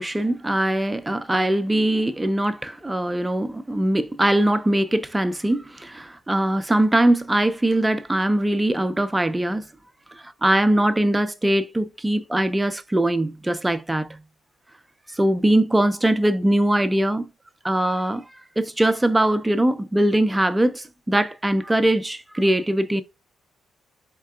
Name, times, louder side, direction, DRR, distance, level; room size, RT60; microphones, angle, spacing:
voice 1, 0.0-9.7 10.4-14.2 15.1-17.3 17.6-18.2 18.6-23.0, right 1 dB, 10° right, 0.5 m, -21 dB
4.0 x 3.7 x 2.3 m
cardioid pair, 90°, 0 cm